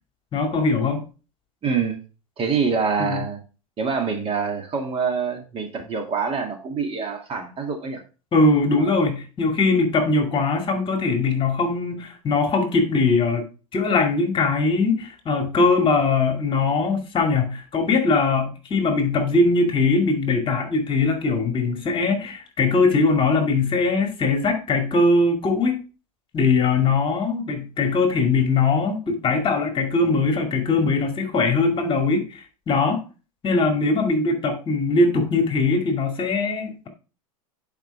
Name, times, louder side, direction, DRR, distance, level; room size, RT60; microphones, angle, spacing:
voice 1, 0.3-1.0 3.0-3.2 8.3-13.4 13.7-25.8 26.3-33.0 33.4-36.9, left 3 dB, 30° left, 2.2 m, -21 dB
voice 2, 1.6-2.0 2.4-3.4 3.8-8.0 8.8-8.9, right 5 dB, 30° right, 2.2 m, -25 dB
10.5 x 5.1 x 3.4 m
hypercardioid pair, 100°, 18 cm